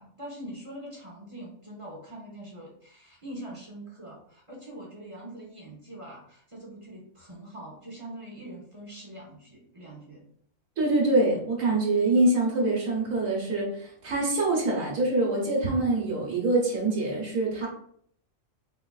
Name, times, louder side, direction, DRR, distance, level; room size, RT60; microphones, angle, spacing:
voice 1, 0.0-10.2, right 1 dB, 30° right, -3 dB, 0.6 m, -43 dB
voice 2, 10.8-17.7, right 2 dB, 90° right, -5 dB, 1.4 m, -25 dB
4.4 x 2.4 x 2.3 m, 0.64 s
omnidirectional pair, 1.4 m